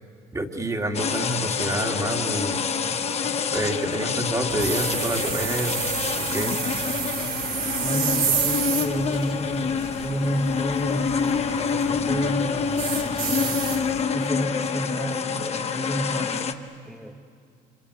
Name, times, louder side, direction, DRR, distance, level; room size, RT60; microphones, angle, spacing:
voice 1, 0.3-2.6 3.5-5.8 6.2-6.6, right 1 dB, 20° right, 3 dB, 2.2 m, -28 dB
sound 1, 0.9-16.5, left 6 dB, 40° left, 1.2 m, -27 dB
sound 2, 4.5-14.0, right 6 dB, 60° right, 2.6 m, -30 dB
voice 2, 7.8-13.7 14.1-17.2, right 1 dB, ahead, 0 dB, 1.3 m, -31 dB
27.5 x 25.0 x 8.4 m, 2.3 s
cardioid pair, 110°, 17 cm